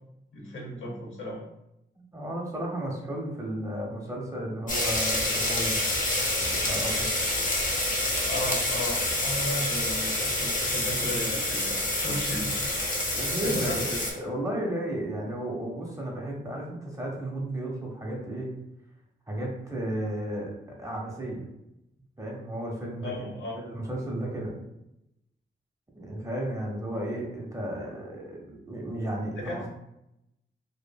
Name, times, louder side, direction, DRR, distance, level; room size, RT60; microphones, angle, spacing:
voice 1, 0.3-1.4 8.2-12.5 12.9-14.1 23.0-23.6 29.4-29.7, left 1 dB, 80° left, -3 dB, 0.8 m, -35 dB
voice 2, 1.9-5.8 6.4-7.1 13.1-18.5 19.3-20.5 20.8-21.4 22.2-24.5 26.0-29.7, right 1 dB, 15° right, -2 dB, 0.7 m, -33 dB
sound 1, 4.7-14.1, left 1 dB, 40° left, 0.8 m, -27 dB
2.8 x 2.4 x 2.2 m, 0.85 s
wide cardioid pair, 90°, 20 cm